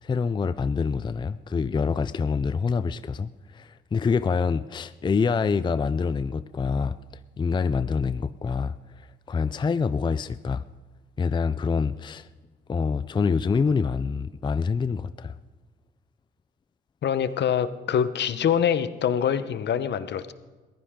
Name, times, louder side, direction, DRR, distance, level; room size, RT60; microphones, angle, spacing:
voice 1, 0.0-7.0 7.4-10.6 11.2-12.3 12.7-15.3, left 5 dB, 25° left, 0.4 m, -26 dB
voice 2, 17.0-20.3, left 8 dB, 60° left, 1.0 m, -25 dB
21.5 x 15.5 x 3.7 m
cardioid pair, 90°, 20 cm